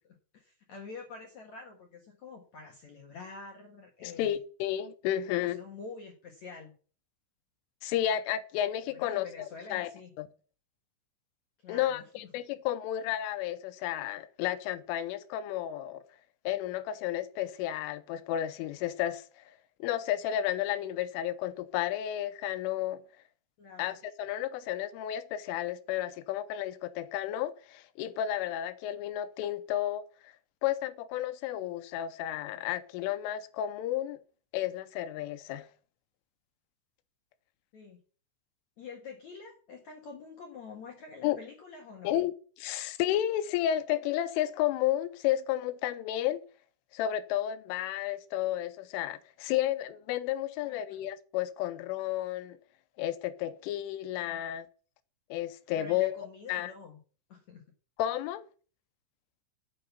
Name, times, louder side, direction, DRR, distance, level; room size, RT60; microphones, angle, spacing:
voice 1, 0.0-4.4 5.3-6.7 8.9-10.1 11.6-12.0 23.6-24.0 37.7-38.0 38.8-42.1 50.6-51.0 54.2-54.4 55.8-57.0 57.3-57.6, left 4 dB, 70° left, 1.7 m, -47 dB
voice 2, 4.0-5.6 7.8-9.3 9.7-9.9 10.2-10.3 11.7-16.0 16.5-19.2 19.8-23.0 23.8-30.3 30.6-34.2 34.5-35.7 41.2-41.4 42.0-42.3 42.6-46.4 46.9-52.6 53.0-54.7 55.3-56.7 58.0-58.4, left 12 dB, 85° left, 3.2 m, -32 dB
8.9 x 7.7 x 6.8 m
omnidirectional pair, 5.8 m